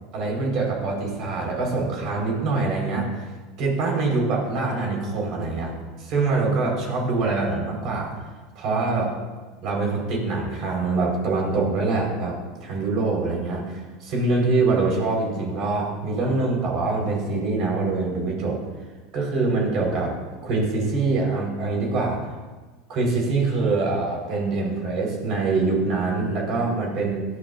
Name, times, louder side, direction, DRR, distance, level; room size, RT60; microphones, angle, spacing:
voice 1, 0.1-3.1 3.6-5.7 6.0-8.1 8.6-9.1 9.6-18.6 19.1-20.1 20.4-22.2 22.9-27.3, right 3 dB, 55° right, 0 dB, 4.2 m, -24 dB
17.5 x 11.5 x 2.5 m, 1.3 s
hypercardioid pair, 85°, 0 cm